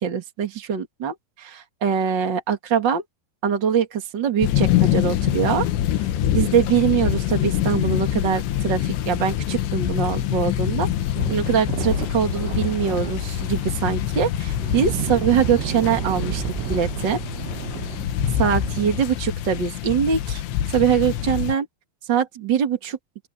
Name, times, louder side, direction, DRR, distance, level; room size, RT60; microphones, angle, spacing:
voice 1, 0.0-3.0 3.4-5.7 6.0-6.1 6.3-10.9 11.3-16.4 16.7-17.2 18.4-20.4 20.7-21.7 22.1-23.0, right 7 dB, 60° right, 1.1 m, -23 dB
sound 1, 4.4-21.5, left 11 dB, 75° left, 3.4 m, -25 dB
sound 2, 10.0-19.0, right 16 dB, 80° right, 3.0 m, -32 dB
open air
omnidirectional pair, 5.6 m